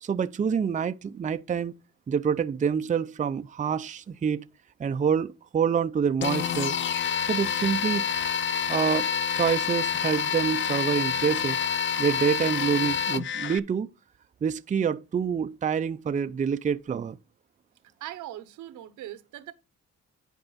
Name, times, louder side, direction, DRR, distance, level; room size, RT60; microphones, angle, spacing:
voice 1, 0.0-1.7 2.1-4.4 4.8-6.7 7.3-8.0 8.7-11.6 12.0-13.9 14.4-17.2, right 7 dB, 25° right, 0.5 m, -27 dB
sound 1, 6.2-13.6, left 7 dB, 40° left, 0.5 m, -28 dB
voice 2, 18.0-19.5, right 13 dB, 85° right, 1.0 m, -40 dB
10.5 x 4.6 x 4.0 m
cardioid pair, 90°, 30 cm